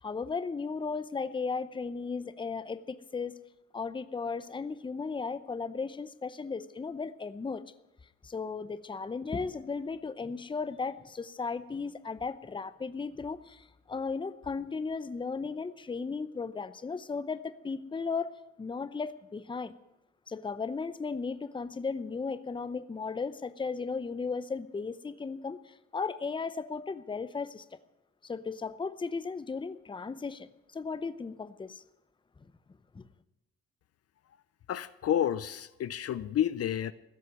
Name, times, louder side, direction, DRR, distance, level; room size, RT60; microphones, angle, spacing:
voice 1, 0.0-3.3 3.7-7.6 8.2-19.7 20.3-27.6 28.2-31.8 32.9-33.1, left 4 dB, 15° left, 14 dB, 0.6 m, -36 dB
voice 2, 34.7-36.9, left 10 dB, 55° left, 15 dB, 0.6 m, -30 dB
15.5 x 6.6 x 9.2 m, 0.93 s
cardioid pair, 90°, 30 cm